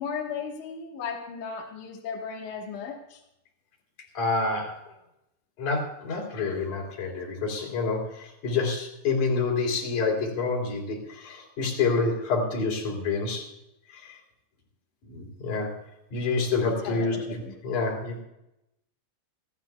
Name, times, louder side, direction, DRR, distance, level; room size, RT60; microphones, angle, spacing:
voice 1, 0.0-3.2 16.8-17.6, left 6 dB, 80° left, 1 dB, 1.7 m, -36 dB
voice 2, 4.1-4.7 5.6-13.5 13.9-14.2 15.0-15.7 16.1-17.4 17.6-18.2, left 4 dB, 40° left, -1 dB, 4.4 m, -28 dB
27.0 x 12.0 x 2.3 m, 0.85 s
omnidirectional pair, 5.9 m